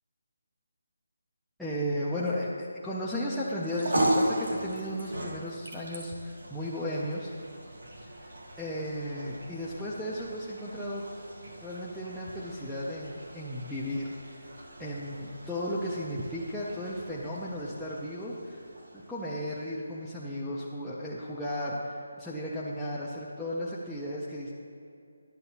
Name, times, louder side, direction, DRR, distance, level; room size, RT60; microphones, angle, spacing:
voice 1, 1.6-7.3 8.0-8.3 8.6-11.0 11.6-14.5 14.8-18.6 18.9-24.5, equal, ahead, -11 dB, 0.4 m, -35 dB
sound 1, 3.5-20.0, right 1 dB, 75° right, 1.4 m, -37 dB
11.0 x 6.8 x 2.8 m, 2.4 s
hypercardioid pair, 175°, 0 cm